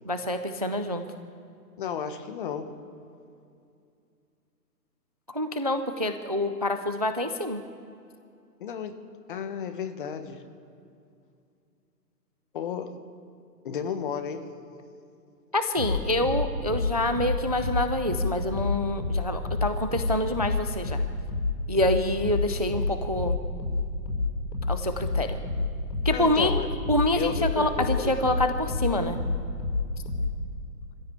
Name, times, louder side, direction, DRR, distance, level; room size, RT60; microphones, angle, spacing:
voice 1, 0.1-1.0 5.3-7.6 15.5-21.0 21.7-23.4 24.7-25.4 26.0-26.5 26.9-29.2, left 1 dB, 25° right, 9 dB, 0.4 m, -26 dB
voice 2, 1.8-2.8 8.6-10.4 12.5-13.0 13.6-14.6 26.1-26.7 27.1-28.1, left 7 dB, 30° left, 8 dB, 1.4 m, -33 dB
sound 1, 15.8-30.5, left 3 dB, 90° left, 6.5 m, -30 dB
24.5 x 15.5 x 8.6 m, 2.5 s
hypercardioid pair, 165°, 49 cm